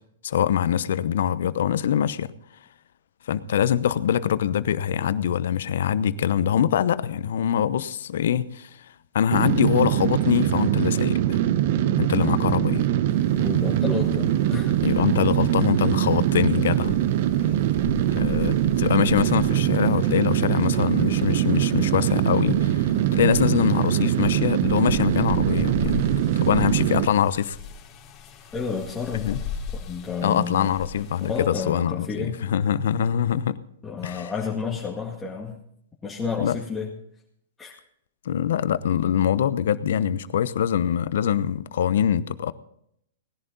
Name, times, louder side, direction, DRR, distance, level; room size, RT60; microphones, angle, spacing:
voice 1, 0.2-2.3 3.3-8.7 9.1-11.4 12.0-12.9 14.8-17.0 18.1-26.1 26.4-27.6 29.1-29.4 30.2-33.6 34.0-34.3 36.4-36.6 38.2-42.5, left 9 dB, 70° left, 15 dB, 0.8 m, -24 dB
sound 1, 9.3-27.1, right 12 dB, 55° right, 0.7 m, -22 dB
sound 2, 13.1-31.5, left 7 dB, 30° left, 3.0 m, -39 dB
voice 2, 13.4-14.8 28.5-29.4 29.9-30.7 31.2-32.4 33.8-35.6 36.0-36.9 37.6-37.8, left 5 dB, 15° left, -4 dB, 2.1 m, -30 dB
19.0 x 11.0 x 4.0 m, 0.71 s
hypercardioid pair, 125°, 0 cm